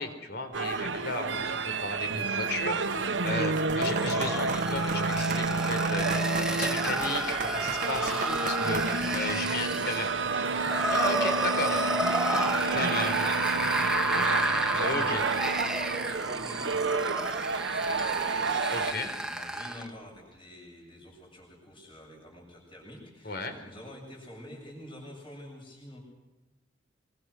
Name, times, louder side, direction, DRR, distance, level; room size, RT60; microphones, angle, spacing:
voice 1, 0.0-10.1 10.9-11.9 12.3-13.1 14.8-15.2 18.7-19.1 23.2-23.5, left 2 dB, 60° left, 7 dB, 4.2 m, -35 dB
sound 1, 0.5-18.9, right 4 dB, 85° right, 1.2 m, -30 dB
sound 2, 3.3-19.9, right 1 dB, 5° right, 1.6 m, -32 dB
sound 3, 3.5-9.4, right 4 dB, 45° right, 1.2 m, -37 dB
voice 2, 9.5-11.3 11.7-26.0, left 1 dB, 30° left, -1 dB, 7.7 m, -47 dB
25.0 x 24.0 x 6.4 m, 1.0 s
head